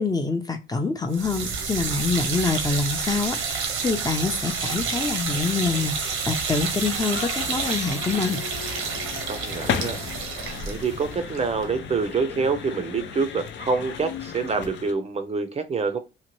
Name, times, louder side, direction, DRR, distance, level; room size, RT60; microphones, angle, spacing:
voice 1, 0.0-8.4, left 4 dB, 20° left, 0.5 m, -26 dB
sound 1, 1.1-12.2, right 5 dB, 90° right, 0.8 m, -29 dB
sound 2, 6.9-14.9, left 7 dB, 65° left, 0.5 m, -35 dB
voice 2, 9.3-10.0 10.7-16.0, right 4 dB, 30° right, 0.4 m, -26 dB
2.8 x 2.1 x 3.0 m
cardioid pair, 90°, 20 cm